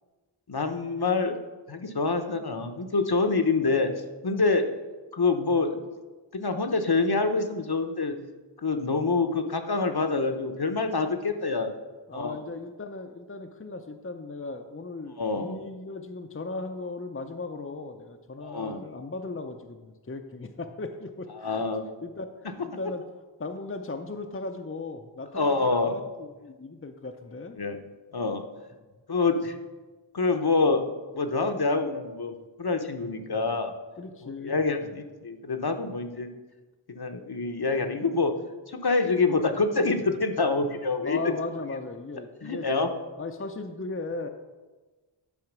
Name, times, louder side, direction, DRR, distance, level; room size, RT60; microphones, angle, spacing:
voice 1, 0.5-1.4 1.7-3.9 4.2-4.7 5.1-5.8 6.3-8.2 8.6-11.7 12.1-12.4 15.2-15.6 18.4-18.9 21.3-21.8 22.6-22.7 25.3-26.0 27.6-27.8 28.1-28.5 29.1-29.6 30.1-30.8 31.1-33.8 34.2-36.3 36.9-38.3 38.7-41.2 42.4-42.9, left 3 dB, 50° left, 6 dB, 0.9 m, -26 dB
voice 2, 12.1-21.6 22.0-22.3 22.6-23.0 23.4-27.6 33.3-33.6 34.0-35.0 41.0-42.7 43.2-44.3, left 3 dB, 25° left, 4 dB, 0.6 m, -37 dB
11.0 x 4.7 x 6.1 m, 1.3 s
wide cardioid pair, 40°, 49 cm